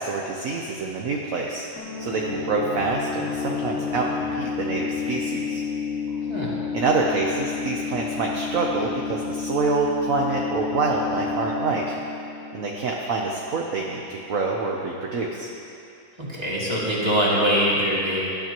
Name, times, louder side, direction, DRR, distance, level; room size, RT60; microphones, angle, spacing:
voice 1, 0.0-1.7 2.0-5.6 6.7-12.0 12.5-15.5, right 3 dB, 55° right, -1 dB, 1.0 m, -26 dB
sound 1, 1.8-13.3, left 5 dB, 40° left, 2.4 m, -30 dB
voice 2, 16.2-18.2, equal, 15° right, -7 dB, 2.4 m, -23 dB
17.5 x 11.5 x 3.0 m, 2.6 s
omnidirectional pair, 2.2 m